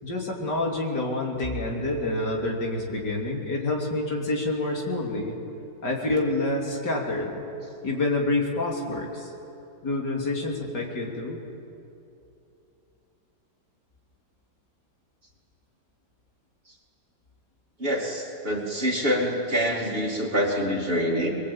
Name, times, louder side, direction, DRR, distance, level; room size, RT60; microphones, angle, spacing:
voice 1, 0.0-5.3 5.8-7.4 7.8-9.3 9.8-11.4, left 2 dB, 60° left, -1 dB, 3.7 m, -27 dB
voice 2, 17.8-21.3, equal, 30° right, -1 dB, 2.8 m, -26 dB
23.0 x 22.5 x 8.8 m, 2.8 s
omnidirectional pair, 2.1 m